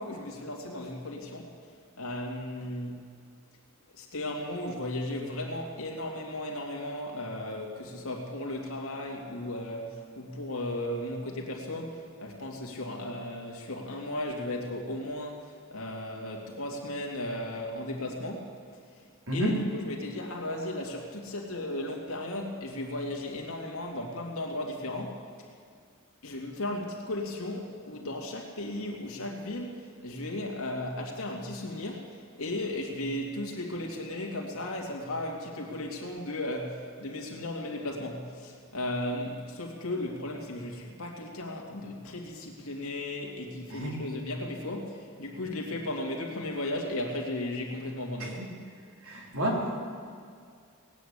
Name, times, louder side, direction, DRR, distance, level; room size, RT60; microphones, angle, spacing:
voice 1, 0.0-3.0 3.9-18.6 18.9-19.1 19.3-25.5 26.2-48.4, left 1 dB, 80° left, 1 dB, 2.5 m, -35 dB
voice 2, 49.0-49.8, equal, 80° right, -1 dB, 3.4 m, -30 dB
18.5 x 9.5 x 8.2 m, 2.2 s
head